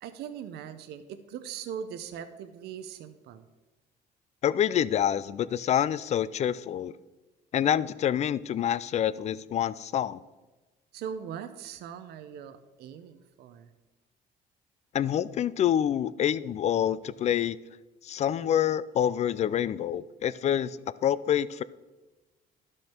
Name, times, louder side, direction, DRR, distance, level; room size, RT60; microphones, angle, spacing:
voice 1, 0.0-3.4 10.9-13.7, right 8 dB, 75° right, 10 dB, 0.7 m, -40 dB
voice 2, 4.4-6.9 7.5-10.2 14.9-17.6 18.0-21.6, left 10 dB, 40° left, 18 dB, 0.4 m, -27 dB
11.5 x 6.5 x 4.4 m, 1.2 s
cardioid pair, 110°, 17 cm